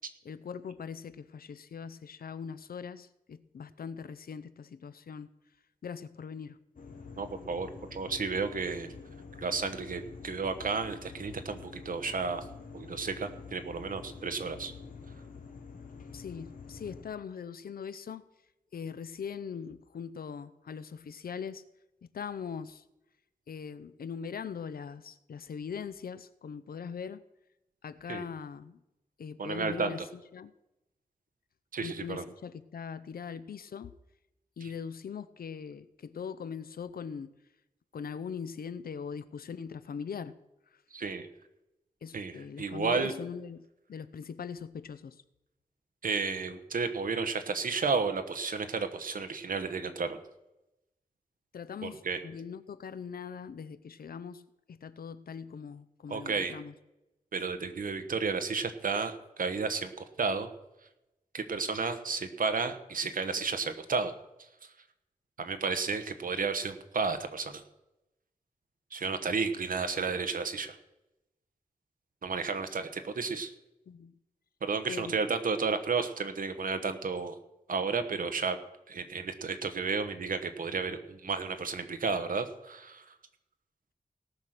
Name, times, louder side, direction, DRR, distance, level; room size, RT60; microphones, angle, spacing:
voice 1, 0.2-5.3 5.8-6.6 16.1-18.3 18.7-21.6 22.1-22.8 23.5-27.2 27.8-28.8 29.2-30.5 31.8-33.9 34.6-37.3 37.9-40.4 42.0-45.2 51.5-56.7 73.9-74.1 74.9-75.2, left 6 dB, 85° left, 0.7 m, -41 dB
sound 1, 6.8-17.0, left 5 dB, 65° left, 1.5 m, -47 dB
voice 2, 7.2-8.9 9.4-12.5 12.7-14.7 28.1-28.2 29.4-29.9 31.7-32.2 34.6-34.7 40.9-41.3 42.1-43.1 46.0-50.2 51.8-52.2 56.1-56.5 57.3-60.5 61.3-64.1 64.6-64.7 65.4-67.6 68.9-70.8 72.2-73.5 74.6-77.4 77.7-78.6 78.9-83.1, right 4 dB, 65° right, 1.2 m, -32 dB
18.0 x 6.6 x 6.0 m
wide cardioid pair, 140°, 15 cm